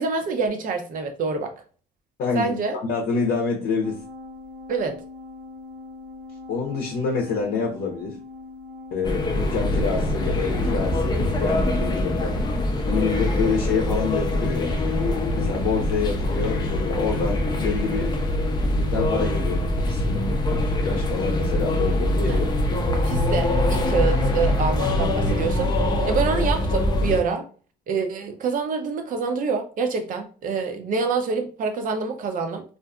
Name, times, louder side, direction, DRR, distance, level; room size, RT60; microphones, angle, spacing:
voice 1, 0.0-1.5 2.3-2.8 4.7-5.0 22.3-22.4 23.0-27.5 27.9-32.6, right 5 dB, 55° right, 0.6 m, -26 dB
voice 2, 2.2-4.0 6.5-8.2 8.9-12.4 12.9-14.8 15.3-18.1 18.7-22.5, left 5 dB, 70° left, 0.7 m, -27 dB
sound 1, 3.8-11.7, left 3 dB, 5° right, 0.8 m, -41 dB
sound 2, 9.0-27.2, left 1 dB, 25° left, 0.5 m, -23 dB
2.5 x 2.5 x 2.2 m
cardioid pair, 110°, 17 cm